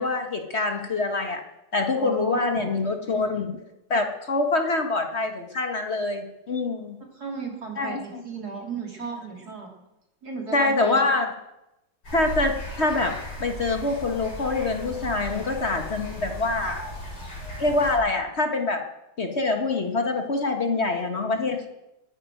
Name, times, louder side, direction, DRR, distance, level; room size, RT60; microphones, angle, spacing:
voice 1, 0.0-1.4 1.7-3.5 3.9-7.0 7.8-8.2 10.5-11.3 12.1-13.1 13.4-16.8 17.6-18.8 19.2-21.7, left 3 dB, 40° left, 4 dB, 1.6 m, -25 dB
voice 2, 2.0-2.7 7.1-9.7 10.2-11.0, right 5 dB, 65° right, 0 dB, 3.9 m, -35 dB
sound 1, 12.0-18.0, equal, 90° left, 7.8 m, -36 dB
21.0 x 9.9 x 6.4 m, 0.91 s
omnidirectional pair, 1.8 m